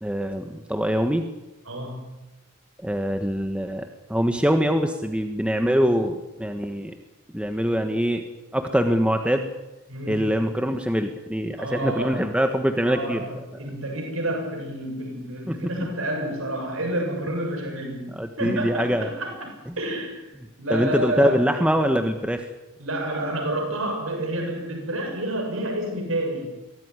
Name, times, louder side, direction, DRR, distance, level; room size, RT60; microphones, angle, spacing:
voice 1, 0.0-1.3 2.8-6.9 7.3-8.2 8.5-9.5 10.1-13.2 15.5-15.9 18.2-19.1 20.7-22.5, equal, 5° right, 5 dB, 1.4 m, -24 dB
voice 2, 1.7-2.1 9.9-10.4 11.6-12.2 12.8-19.5 19.8-20.3 20.6-21.7 22.8-26.6, right 1 dB, 75° right, 2 dB, 7.1 m, -29 dB
23.5 x 18.0 x 9.8 m, 0.98 s
head